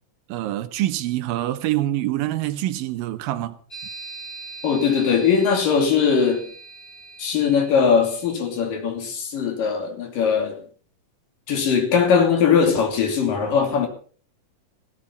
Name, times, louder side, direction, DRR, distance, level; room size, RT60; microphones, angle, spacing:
voice 1, 0.3-3.6, right 14 dB, 85° right, 2.7 m, -25 dB
sound 1, 3.7-8.4, right 3 dB, 25° left, 5.6 m, -41 dB
voice 2, 4.6-6.5 7.2-10.6 11.5-13.9, left 6 dB, 75° left, 4.4 m, -20 dB
16.0 x 13.0 x 5.6 m
omnidirectional pair, 4.0 m